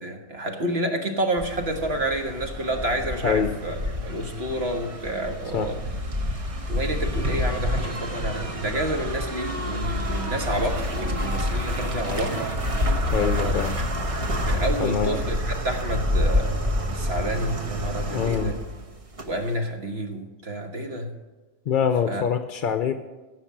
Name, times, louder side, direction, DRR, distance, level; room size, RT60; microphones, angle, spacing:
voice 1, 0.0-3.7 4.0-5.8 6.7-12.5 13.2-13.6 14.4-18.6 19.2-21.1 22.0-22.2, right 1 dB, 60° right, 4 dB, 1.7 m, -29 dB
sound 1, 1.4-19.5, left 1 dB, 30° right, 1.1 m, -28 dB
voice 2, 13.1-13.7 14.8-15.2 18.1-18.5 21.7-22.9, left 7 dB, 55° left, 8 dB, 0.7 m, -24 dB
16.0 x 5.9 x 7.3 m, 1.2 s
omnidirectional pair, 1.2 m